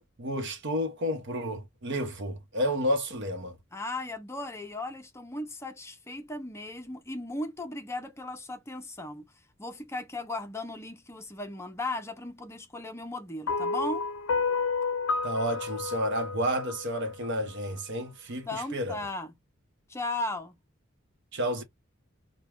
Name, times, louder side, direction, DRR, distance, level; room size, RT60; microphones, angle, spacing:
voice 1, 0.0-3.6 15.2-19.0 21.3-21.6, equal, 60° right, 0.9 m, -31 dB
voice 2, 3.7-9.3 9.6-14.1 18.5-19.3 19.9-20.6, left 2 dB, 15° left, 0.5 m, -36 dB
sound 1, 13.5-17.8, left 4 dB, 70° left, 0.5 m, -31 dB
3.0 x 2.2 x 3.5 m
head